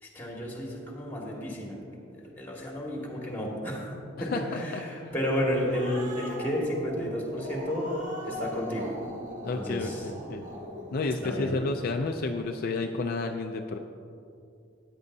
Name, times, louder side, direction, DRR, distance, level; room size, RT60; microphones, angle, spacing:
voice 1, 0.0-1.8 2.1-3.9 4.2-7.9 8.2-8.9 9.5-10.0 11.2-11.5, equal, 10° left, -3 dB, 1.8 m, -32 dB
voice 2, 4.2-5.1 9.4-10.4 10.9-13.8, left 3 dB, 50° left, 4 dB, 0.4 m, -31 dB
Growling, 5.3-12.1, equal, 40° right, 1.3 m, -41 dB
13.5 x 9.8 x 2.7 m, 2.6 s
head